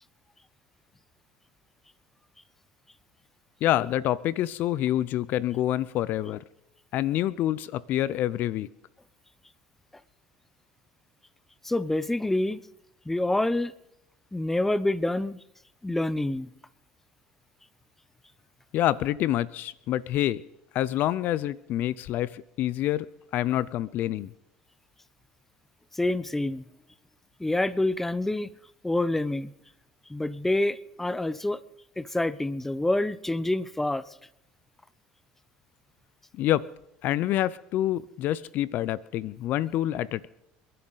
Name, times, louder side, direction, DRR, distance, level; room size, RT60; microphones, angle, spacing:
voice 1, 3.6-6.4 6.9-8.7 18.7-20.4 20.7-23.1 23.3-24.3 36.3-36.7 37.0-40.3, left 13 dB, 60° left, 0.5 m, -27 dB
voice 2, 11.6-12.6 13.1-13.7 14.3-15.4 15.8-16.5 25.9-26.6 27.4-28.5 28.8-29.5 30.1-31.6 32.0-34.0, left 1 dB, 10° left, 0.6 m, -27 dB
28.5 x 11.0 x 4.0 m
supercardioid pair, 100°, 4 cm